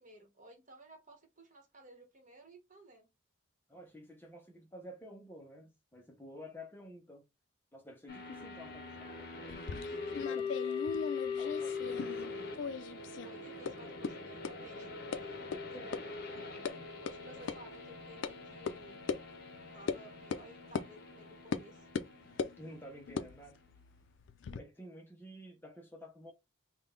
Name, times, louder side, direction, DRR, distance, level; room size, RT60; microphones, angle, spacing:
voice 1, 0.0-3.1 8.4-8.7 10.3-10.4 13.2-16.7 17.0-19.0 19.7-21.9, right 2 dB, 40° right, 1.0 m, -56 dB
voice 2, 3.7-7.2 7.7-10.9 11.4-12.3 15.7-16.0 22.6-23.6 24.5-26.3, equal, 10° left, 0.6 m, -51 dB
sound 1, 8.1-23.8, left 5 dB, 50° left, 0.7 m, -42 dB
sound 2, 9.5-12.3 12.6-13.3 13.7-13.8 14.0-14.1 14.4-14.5 15.1-15.2 15.5-15.6 15.9-16.0 16.4-16.7 17.1-17.2 17.5-17.6 18.2-18.3 18.7-18.8 19.1-19.2 19.9-20.0 20.3-20.5 20.8-20.9 21.5-21.7 22.0-22.6 23.1-24.6, left 5 dB, 65° left, 0.3 m, -38 dB
3.7 x 2.2 x 3.7 m
head